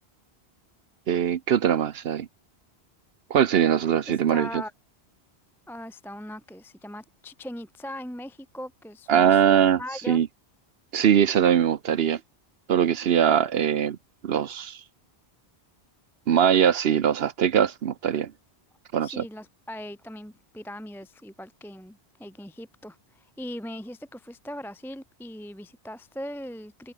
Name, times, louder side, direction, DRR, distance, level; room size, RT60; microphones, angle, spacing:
voice 1, 1.1-2.3 3.3-4.6 9.1-9.8 10.1-10.3 10.9-12.2 12.7-14.0 14.2-14.8 16.3-18.3 18.9-19.2, right 8 dB, 70° right, 1.0 m, -21 dB
voice 2, 4.1-4.7 5.7-10.2 19.0-26.9, equal, ahead, 0.7 m, -40 dB
omnidirectional pair, 1.1 m